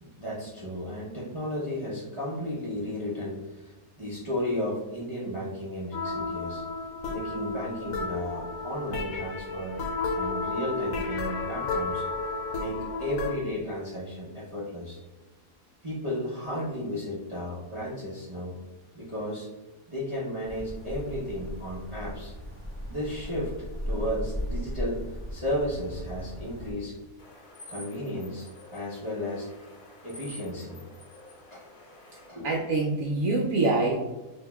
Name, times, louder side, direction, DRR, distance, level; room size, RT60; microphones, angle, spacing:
voice 1, 0.0-6.6 7.1-9.8 10.1-12.1 12.6-15.0 15.8-18.5 18.9-19.5 19.9-22.3 22.8-27.0 27.7-29.5 30.0-30.8 31.5-31.6 32.3-32.7, left 1 dB, 25° right, -7 dB, 0.7 m, -34 dB
sound 1, 5.9-13.4, left 3 dB, 75° left, 1.0 m, -32 dB
sound 2, 20.4-26.7, equal, 10° left, 0.7 m, -36 dB
sound 3, 27.2-32.3, left 1 dB, 40° left, 0.9 m, -49 dB
voice 2, 32.4-34.0, right 3 dB, 70° right, -1 dB, 1.0 m, -25 dB
6.2 x 2.8 x 2.3 m, 1.2 s
omnidirectional pair, 1.5 m